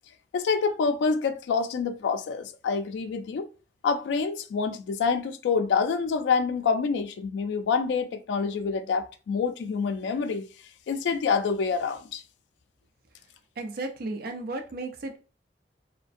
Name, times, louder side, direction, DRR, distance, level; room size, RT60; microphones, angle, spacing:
voice 1, 0.3-3.5 3.8-10.5 10.9-12.2, left 5 dB, 80° left, 0.3 m, -27 dB
voice 2, 13.6-15.2, right 2 dB, 60° right, 0.5 m, -34 dB
2.5 x 2.1 x 2.4 m
head